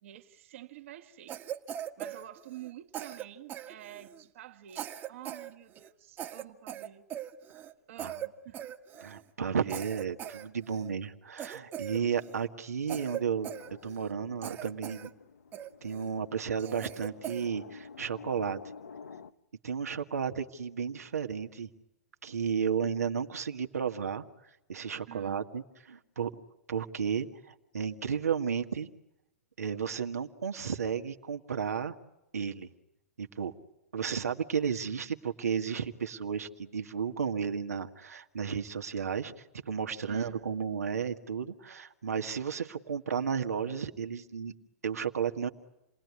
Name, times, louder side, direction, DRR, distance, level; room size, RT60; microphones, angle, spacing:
voice 1, 0.0-1.4 2.0-7.1 7.9-8.7 9.6-9.7 25.1-25.4 40.1-40.4, right 13 dB, 55° right, 2.0 m, -49 dB
Cough, 1.3-2.7 2.9-4.2 4.7-5.5 5.7-5.9 6.2-7.7 8.0-8.3 8.5-9.2 9.7-10.9 11.4-12.4 12.9-14.1 14.4-15.1 15.5-16.1 16.6-17.5, right 11 dB, 25° right, 1.6 m, -40 dB
voice 2, 9.0-13.5 13.8-15.1 15.8-18.6 19.6-21.7 22.2-24.2 24.7-26.3 26.7-28.9 29.6-31.9 32.3-32.7 33.2-33.5 33.9-44.5 44.8-45.5, right 7 dB, 80° right, 2.0 m, -33 dB
sound 1, 12.9-19.3, left 5 dB, 75° left, 1.2 m, -51 dB
29.5 x 20.0 x 9.7 m
hypercardioid pair, 115°, 8 cm